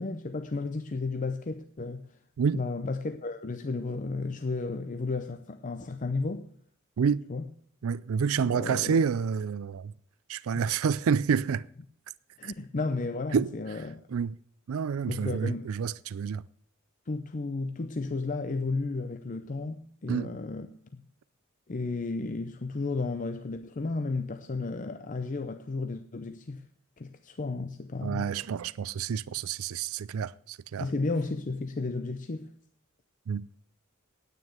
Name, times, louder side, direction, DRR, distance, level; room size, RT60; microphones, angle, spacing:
voice 1, 0.0-2.0 2.5-6.5 7.3-7.4 8.4-9.0 10.5-10.6 12.4-14.0 15.1-15.7 17.1-20.7 21.7-26.6 27.0-28.3 30.8-32.5, left 3 dB, 40° left, 0.6 m, -33 dB
voice 2, 7.8-9.9 10.3-11.7 12.4-12.5 13.3-13.5 14.1-14.4 14.7-16.4 20.1-20.4 28.0-30.9 33.3-33.4, right 6 dB, 75° right, 0.4 m, -28 dB
9.3 x 9.2 x 7.8 m
head